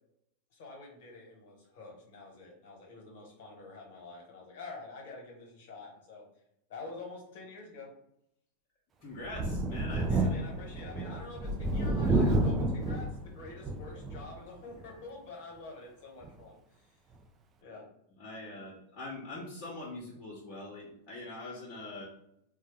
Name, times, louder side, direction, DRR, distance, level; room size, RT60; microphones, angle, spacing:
voice 1, 0.5-6.2 6.7-7.9 10.1-16.8 17.6-17.9, left 3 dB, 60° left, 0 dB, 1.2 m, -47 dB
voice 2, 9.0-10.2 18.2-22.0, left 2 dB, 45° left, -5 dB, 0.8 m, -43 dB
Thunder, 9.3-14.4 14.8-14.9 16.2-16.3, right 2 dB, 25° right, 0.4 m, -30 dB
3.8 x 2.2 x 3.2 m, 0.76 s
figure-of-eight pair, 95°, 0 cm